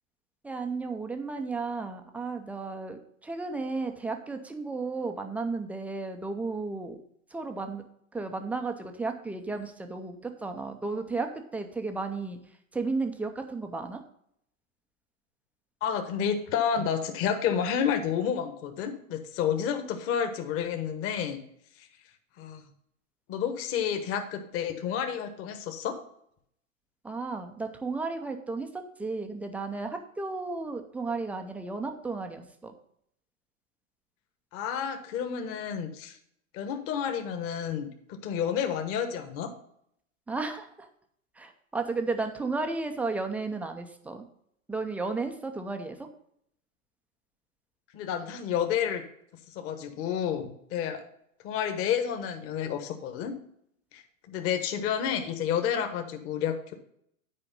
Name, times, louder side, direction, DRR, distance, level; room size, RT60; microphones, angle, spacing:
voice 1, 0.4-7.0 7.3-7.8 8.1-12.4 12.7-14.0 27.0-32.7 40.3-40.9 41.4-44.3 44.7-46.1, right 3 dB, 5° right, 5 dB, 0.4 m, -33 dB
voice 2, 15.8-21.4 21.8-21.9 22.4-22.6 23.3-26.0 34.5-36.2 36.5-39.5 47.9-49.0 49.5-51.0 51.4-53.3 53.9-56.7, left 8 dB, 35° left, 7 dB, 1.2 m, -30 dB
10.0 x 5.0 x 5.3 m, 0.71 s
hypercardioid pair, 115°, 42 cm